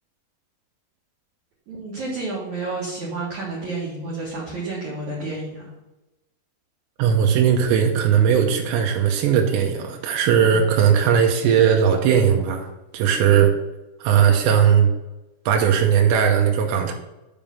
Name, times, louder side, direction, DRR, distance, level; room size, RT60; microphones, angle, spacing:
voice 1, 1.7-5.7 10.3-10.6 13.2-13.5, right 3 dB, 55° right, -6 dB, 2.4 m, -31 dB
voice 2, 7.0-12.7 12.9-13.5 14.0-14.9 15.5-16.9, right 8 dB, 80° right, 2 dB, 2.9 m, -18 dB
6.2 x 5.3 x 7.0 m, 1.0 s
omnidirectional pair, 5.2 m